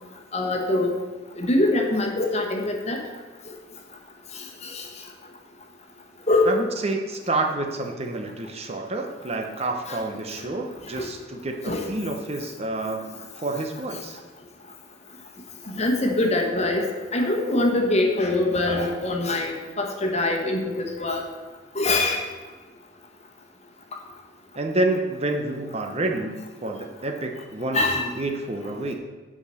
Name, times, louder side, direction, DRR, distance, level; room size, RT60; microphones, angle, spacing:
voice 1, 0.3-0.9 1.4-3.0 4.6-4.8 6.3-6.5 9.9-10.0 10.9-11.1 11.6-11.9 15.7-21.2 21.7-22.2 27.7-28.1, left 2 dB, 35° left, 2 dB, 1.3 m, -23 dB
voice 2, 6.4-13.1 13.4-14.2 24.5-28.9, right 2 dB, 30° right, 3 dB, 0.8 m, -28 dB
9.7 x 4.9 x 6.9 m, 1.4 s
head